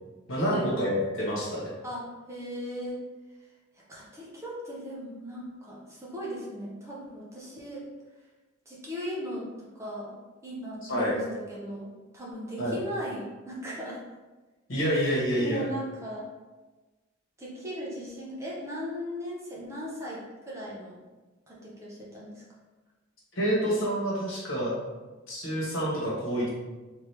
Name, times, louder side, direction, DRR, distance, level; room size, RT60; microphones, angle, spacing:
voice 1, 0.3-1.7 10.9-11.1 12.6-12.8 14.7-15.7 23.3-24.7 25.3-26.5, equal, 80° left, -5 dB, 1.3 m, -27 dB
voice 2, 1.8-3.0 3.9-7.8 8.7-10.2 10.4-14.0 14.9-16.3 17.4-21.0 21.5-22.4, equal, 15° right, -6 dB, 0.9 m, -38 dB
3.5 x 3.0 x 3.3 m, 1.2 s
head